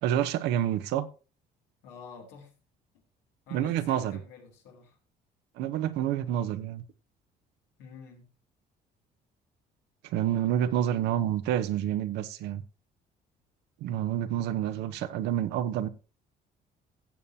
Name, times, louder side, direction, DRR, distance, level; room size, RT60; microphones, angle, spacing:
voice 1, 0.0-1.1 3.5-4.2 5.6-6.8 10.1-12.6 13.8-15.9, right 11 dB, 90° right, 0.9 m, -28 dB
voice 2, 1.8-2.5 3.5-5.0 7.8-8.3, left 6 dB, 90° left, 3.3 m, -48 dB
17.5 x 7.1 x 2.8 m
cardioid pair, 110°, 17 cm